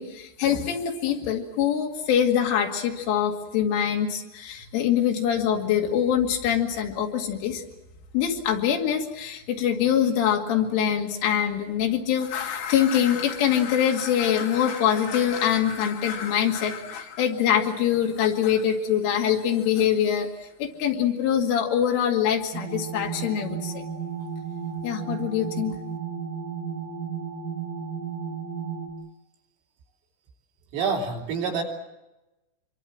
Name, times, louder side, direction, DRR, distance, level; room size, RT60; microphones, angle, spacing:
voice 1, 0.0-7.6 8.1-20.3 20.6-23.8 24.8-25.8, left 9 dB, 80° left, 2 dB, 4.7 m, -24 dB
sound 1, 22.5-28.9, right 6 dB, 55° right, 5.6 m, -33 dB
voice 2, 30.7-31.6, right 5 dB, 90° right, 0 dB, 5.9 m, -27 dB
26.0 x 23.0 x 7.5 m, 1.0 s
omnidirectional pair, 5.7 m